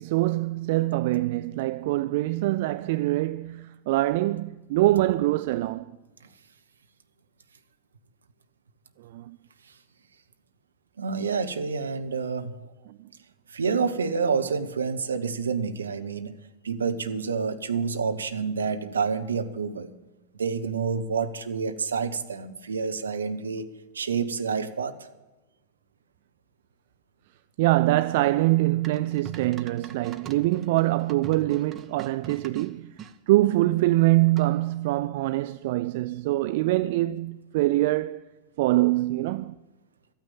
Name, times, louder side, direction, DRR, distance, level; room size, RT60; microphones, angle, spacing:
voice 1, 0.0-5.9 9.0-9.4 12.9-13.0 27.6-38.2 38.6-39.6, right 17 dB, 50° right, 0.4 m, -24 dB
voice 2, 11.0-12.5 13.5-16.4 16.6-19.9 20.3-23.7 23.9-25.0, right 5 dB, 70° right, 1.0 m, -28 dB
sound 1, 28.8-33.1 34.4-34.8, right 7 dB, 25° right, 0.9 m, -44 dB
13.5 x 9.3 x 8.9 m
figure-of-eight pair, 90°, 0 cm